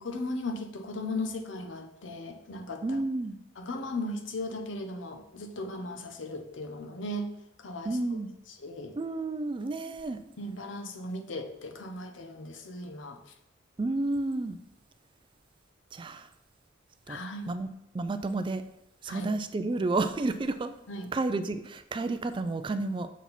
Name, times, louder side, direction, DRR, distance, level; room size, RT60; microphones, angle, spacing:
voice 1, 0.0-3.0 3.6-7.3 7.6-8.0 8.6-8.9 10.4-13.2 17.1-17.5 19.1-19.3 20.9-21.1, left 2 dB, 75° left, 6 dB, 0.8 m, -37 dB
voice 2, 2.8-3.4 7.8-8.3 9.0-10.2 13.8-14.6 15.9-16.3 17.1-17.2 17.5-17.7 17.9-18.6 19.0-20.7 21.1-23.1, right 2 dB, 25° right, 10 dB, 0.3 m, -31 dB
7.2 x 4.3 x 4.1 m, 0.81 s
head